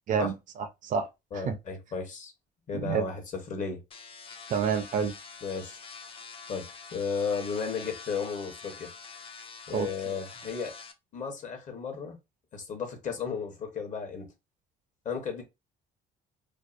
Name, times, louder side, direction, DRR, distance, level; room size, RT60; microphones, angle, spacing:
voice 1, 0.1-1.1 1.3-1.6 2.7-3.1 4.5-5.1 9.7-9.9, right 6 dB, 50° right, 0.4 m, -28 dB
voice 2, 1.3-2.3 2.7-3.8 5.4-5.8 6.5-8.9 9.7-10.7 11.1-12.2 12.5-14.3 15.0-15.4, left 5 dB, 50° left, 0.9 m, -34 dB
sound 1, 3.9-10.9, left 5 dB, 35° left, 0.4 m, -46 dB
2.6 x 2.1 x 2.4 m
cardioid pair, 110°, 17 cm